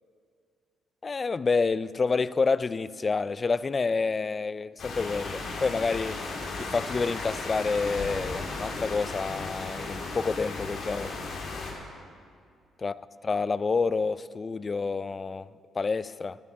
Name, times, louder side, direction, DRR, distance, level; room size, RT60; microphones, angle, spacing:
voice 1, 1.0-6.3 6.6-11.1 12.8-15.5 15.7-16.4, left 4 dB, 35° left, 0.4 m, -28 dB
sound 1, 4.8-11.7, left 3 dB, 65° left, 2.7 m, -35 dB
22.5 x 8.2 x 4.9 m
cardioid pair, 90°, 0 cm